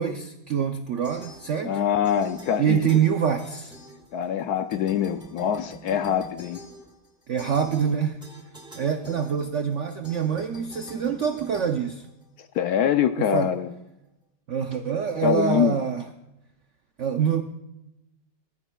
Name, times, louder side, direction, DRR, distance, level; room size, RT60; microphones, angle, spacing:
voice 1, 0.0-1.7 2.6-3.7 7.3-8.2 8.7-12.1 13.2-13.5 14.5-16.1 17.0-17.4, right 7 dB, 75° right, 6 dB, 0.6 m, -25 dB
sound 1, 1.0-4.4 4.7-12.6, equal, 5° right, 1.3 m, -46 dB
voice 2, 1.6-3.0 4.1-6.6 12.5-13.7 15.2-15.8, left 9 dB, 70° left, 10 dB, 0.9 m, -24 dB
18.5 x 14.0 x 2.3 m, 0.91 s
omnidirectional pair, 2.0 m